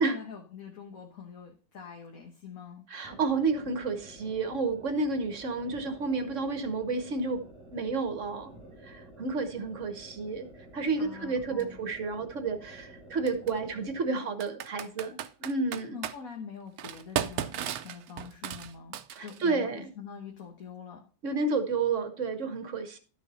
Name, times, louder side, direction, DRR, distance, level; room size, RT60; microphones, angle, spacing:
voice 1, 0.0-2.8 11.0-11.8 14.2-14.3 15.8-18.9 19.2-21.0, left 6 dB, 60° left, 2 dB, 1.6 m, -44 dB
voice 2, 2.9-7.4 7.7-8.5 8.8-10.5 10.7-16.0 19.1-19.9 21.2-23.0, right 4 dB, 50° right, 8 dB, 1.3 m, -31 dB
sound 1, 3.0-14.1, right 1 dB, 20° right, 1.6 m, -51 dB
Computer keyboard, 11.6-11.7 13.3-13.5 14.4-16.2 16.8-19.5, right 10 dB, 70° right, 1.1 m, -35 dB
12.0 x 6.4 x 4.1 m, 0.39 s
omnidirectional pair, 1.8 m